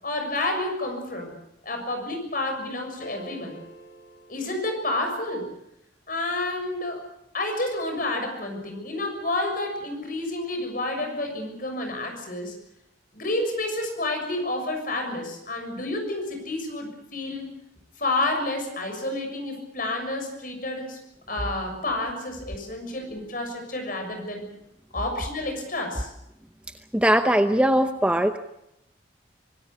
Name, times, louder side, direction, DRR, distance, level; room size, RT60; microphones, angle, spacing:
voice 1, 0.0-1.3 1.6-3.6 4.3-5.5 6.1-7.1 7.3-12.5 13.1-17.5 18.0-21.0 21.3-24.5 24.9-26.1, left 2 dB, 45° left, 4 dB, 6.7 m, -30 dB
sound 1, 3.0-5.3, right 1 dB, 70° left, 4.1 m, -45 dB
voice 2, 26.9-28.4, equal, 5° right, 7 dB, 0.8 m, -20 dB
25.5 x 18.5 x 8.2 m, 0.81 s
head